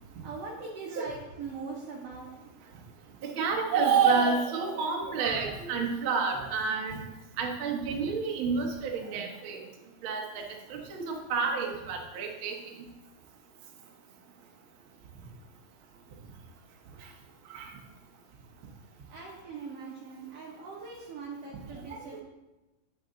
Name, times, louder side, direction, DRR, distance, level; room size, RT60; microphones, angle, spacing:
voice 1, 0.2-2.5 19.1-22.2, right 4 dB, 70° right, -4 dB, 1.4 m, -41 dB
voice 2, 3.2-7.0 7.4-9.6 10.0-12.5 17.5-17.6, right 5 dB, 85° right, 1 dB, 1.1 m, -29 dB
8.9 x 7.1 x 3.8 m, 1.1 s
omnidirectional pair, 4.3 m